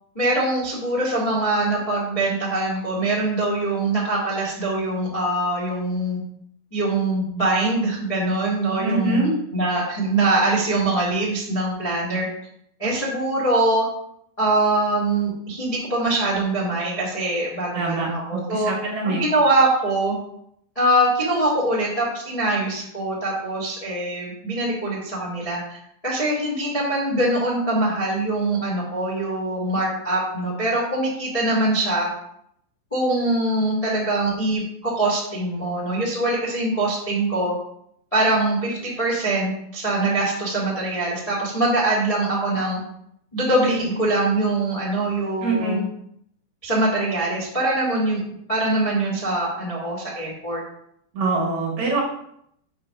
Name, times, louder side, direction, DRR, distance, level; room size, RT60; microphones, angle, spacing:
voice 1, 0.1-6.2 6.7-12.3 12.8-13.8 14.4-18.7 19.0-20.1 20.7-25.8 26.0-32.1 32.9-37.5 38.1-42.8 43.3-45.8 46.6-48.2 48.5-50.6, right 2 dB, 25° left, -6 dB, 0.7 m, -23 dB
voice 2, 8.8-9.3 17.7-19.2 45.4-45.8 51.1-52.0, right 3 dB, 50° right, -5 dB, 2.6 m, -24 dB
8.4 x 3.6 x 6.7 m, 0.72 s
omnidirectional pair, 5.4 m